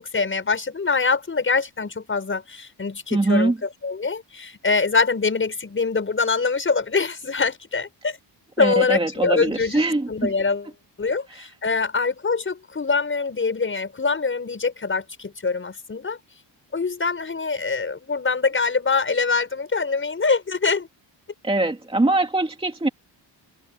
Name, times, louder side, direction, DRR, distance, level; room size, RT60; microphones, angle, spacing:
voice 1, 0.0-3.5 3.8-8.2 8.6-9.8 10.1-10.7 11.0-16.2 16.7-20.9, left 4 dB, 30° left, 6.7 m, -24 dB
voice 2, 3.1-3.6 8.6-10.3 11.3-11.5 21.4-22.9, right 2 dB, 15° right, 2.5 m, -22 dB
cardioid pair, 140°, 44 cm